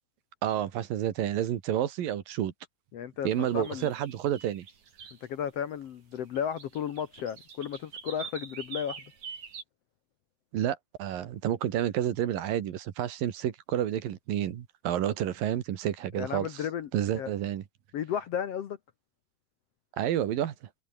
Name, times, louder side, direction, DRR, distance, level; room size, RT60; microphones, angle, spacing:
voice 1, 0.4-2.5 3.3-4.7 10.5-16.5 16.9-17.6 20.0-20.6, right 11 dB, 85° right, 3.5 m, -30 dB
voice 2, 2.9-3.9 5.2-9.0 16.1-17.3 17.9-18.8, left 8 dB, 60° left, 1.8 m, -34 dB
sound 1, 3.4-5.4 6.1-9.6, right 6 dB, 60° right, 4.8 m, -45 dB
omnidirectional pair, 3.9 m